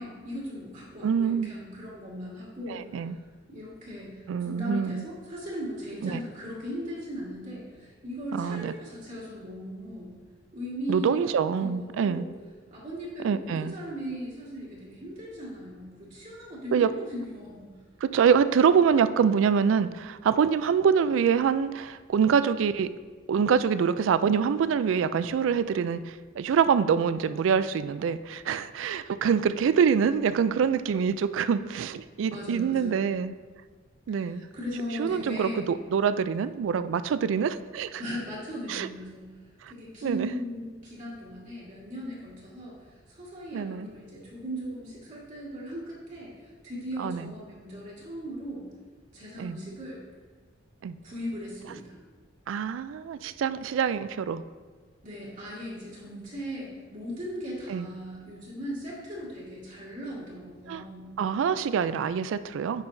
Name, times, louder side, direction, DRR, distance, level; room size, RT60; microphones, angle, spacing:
voice 1, 0.0-3.2 3.5-10.2 10.5-12.3 12.7-17.7 32.3-33.1 34.1-35.7 38.0-39.3 39.7-48.6 49.1-50.1 51.0-52.0 55.0-61.1, equal, 45° right, -7 dB, 1.7 m, -38 dB
voice 2, 1.0-1.5 2.7-3.2 4.3-5.0 6.0-6.2 8.3-8.7 10.9-12.3 13.2-13.7 16.7-16.9 18.0-22.9 23.3-33.3 34.1-34.4 35.0-38.0 38.7-38.9 39.6-39.7 40.0-40.3 43.5-43.9 47.0-47.3 49.4-49.6 50.8-51.0 52.5-54.4 57.7-57.9 60.7-60.8 61.2-62.9, right 7 dB, 70° right, 14 dB, 0.3 m, -25 dB
8.8 x 5.6 x 2.6 m, 1.4 s
head